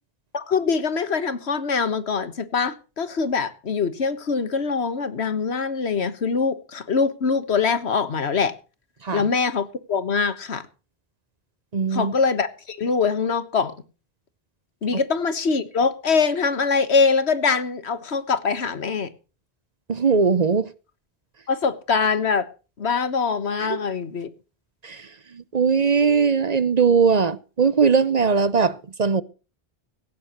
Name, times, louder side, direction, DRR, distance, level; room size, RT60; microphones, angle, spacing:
voice 1, 0.3-8.5 9.1-10.6 11.9-13.7 14.8-19.1 21.5-22.5 22.8-24.3, left 5 dB, 85° left, 1.6 m, -23 dB
voice 2, 11.7-12.1 19.9-20.7 23.6-23.8 24.8-25.1 25.3-29.2, right 5 dB, 45° right, 0.8 m, -20 dB
17.5 x 16.0 x 3.0 m
omnidirectional pair, 1.1 m